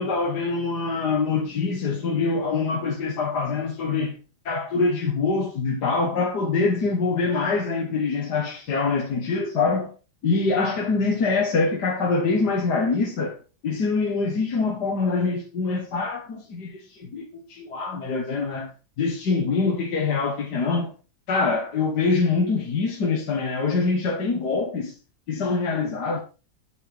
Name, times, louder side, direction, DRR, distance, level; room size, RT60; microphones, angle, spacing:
voice 1, 0.0-4.2 4.5-9.9 10.2-13.4 13.6-18.7 19.0-20.9 21.3-24.9 25.3-26.2, left 4 dB, 65° left, 2.2 m, -24 dB
8.7 x 8.2 x 4.9 m
omnidirectional pair, 1.9 m